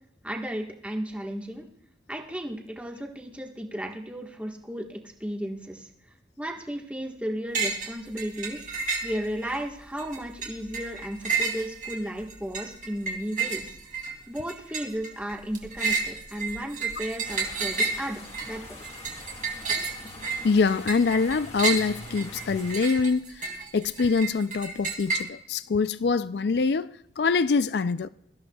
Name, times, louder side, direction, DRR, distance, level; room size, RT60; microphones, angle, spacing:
voice 1, 0.2-1.7 2.1-5.9 6.4-8.7 9.0-13.7 14.3-18.8, equal, 10° right, 1.4 m, -34 dB
sound 1, 7.5-7.9 8.2-9.6 10.0-25.2, right 4 dB, 50° right, 2.5 m, -31 dB
sound 2, 17.2-22.7, left 2 dB, 35° left, 1.8 m, -44 dB
voice 2, 20.4-23.5 23.7-28.1, left 4 dB, 65° left, 0.4 m, -24 dB
23.5 x 13.5 x 2.3 m
head